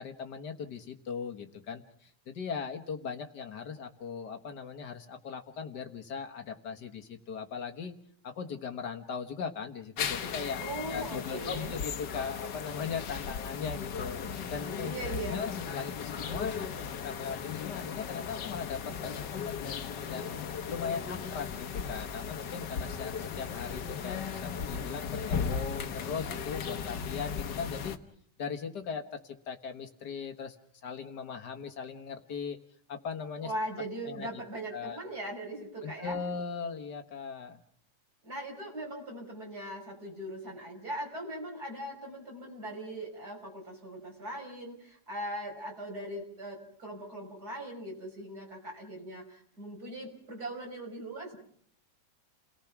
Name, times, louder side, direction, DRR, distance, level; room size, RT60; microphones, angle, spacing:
voice 1, 0.0-7.9 8.2-10.6 10.9-20.4 20.7-28.0 28.4-30.6 30.8-32.6 32.9-33.5 34.0-34.4 34.7-35.0 35.8-37.6, left 6 dB, 75° left, 6 dB, 2.0 m, -39 dB
sound 1, 10.0-28.0, left 6 dB, 90° left, 1.8 m, -36 dB
voice 2, 10.6-11.7 14.8-15.4 33.4-36.2 38.2-51.4, right 1 dB, 65° right, -1 dB, 6.2 m, -40 dB
30.0 x 18.5 x 6.0 m, 0.62 s
omnidirectional pair, 1.8 m